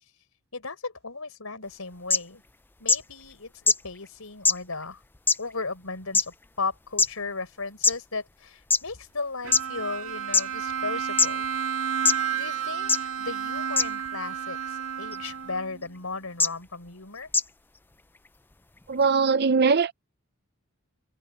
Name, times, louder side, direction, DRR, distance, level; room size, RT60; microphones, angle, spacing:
voice 1, 0.5-2.4 2.8-5.0 5.4-11.4 12.3-17.3, left 3 dB, 80° left, 4.5 m, -36 dB
sound 1, 2.1-2.2 2.9-3.0 3.7-3.8 4.4-4.5 5.3-5.4 6.1-6.2 7.0-7.1 7.8-7.9 8.7-8.8 9.5-9.6 10.3-10.4 11.2-11.3 12.0-12.1 12.9-13.0 13.8-13.9 15.1-15.3 16.4-16.5 17.3-17.4, left 4 dB, 10° left, 0.4 m, -20 dB
Bowed string instrument, 9.4-15.9, right 8 dB, 75° right, 2.0 m, -31 dB
voice 2, 18.9-19.9, right 5 dB, 50° right, 0.6 m, -21 dB
head